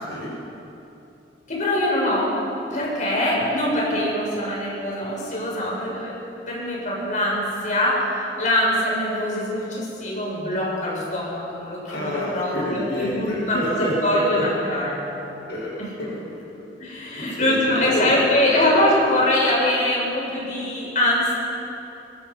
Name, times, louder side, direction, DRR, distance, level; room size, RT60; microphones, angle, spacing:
voice 1, 1.5-2.3 2.7-6.1 6.5-15.0 15.8-15.9 16.8-21.3, left 1 dB, 45° left, -4 dB, 6.9 m, -23 dB
voice 2, 11.9-14.5 15.5-18.7, left 1 dB, 90° left, -4 dB, 5.3 m, -29 dB
24.5 x 20.0 x 5.7 m, 2.9 s
head